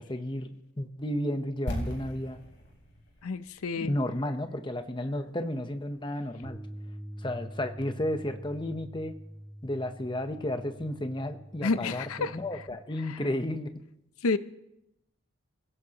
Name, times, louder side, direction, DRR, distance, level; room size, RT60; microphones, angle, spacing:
voice 1, 0.0-2.4 3.8-6.6 7.2-9.2 9.6-13.7, left 1 dB, 20° left, 7 dB, 0.8 m, -33 dB
sound 1, 1.7-5.6 5.9-6.0, equal, 55° left, 4.2 m, -40 dB
voice 2, 3.2-3.9 11.6-12.4 13.1-13.2 14.2-14.4, left 3 dB, 80° left, 13 dB, 0.6 m, -29 dB
Bass guitar, 6.4-12.7, equal, 15° right, 4.4 m, -45 dB
27.0 x 16.0 x 3.0 m, 0.86 s
head